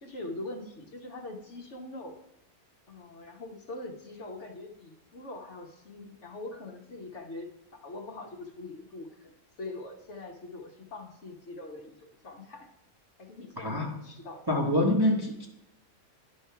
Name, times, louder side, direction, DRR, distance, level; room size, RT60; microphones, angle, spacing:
voice 1, 0.0-2.2 2.9-9.3 9.6-12.7 13.2-14.5 15.2-15.4, left 2 dB, 55° left, 3 dB, 1.2 m, -43 dB
voice 2, 13.6-13.9 14.5-15.5, left 1 dB, 20° right, 0 dB, 0.7 m, -26 dB
10.5 x 3.5 x 5.5 m, 0.88 s
omnidirectional pair, 1.6 m